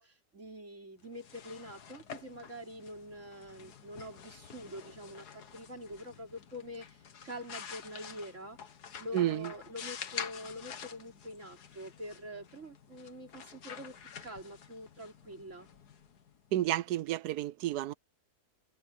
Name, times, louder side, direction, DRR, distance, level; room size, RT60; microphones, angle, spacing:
voice 1, 0.0-8.6 9.0-15.7, equal, 50° right, 4.4 m, -45 dB
sound 1, 1.0-16.7, left 7 dB, 80° left, 1.9 m, -48 dB
voice 2, 9.1-9.5 16.5-17.9, right 13 dB, 90° right, 1.2 m, -31 dB
omnidirectional pair, 1.7 m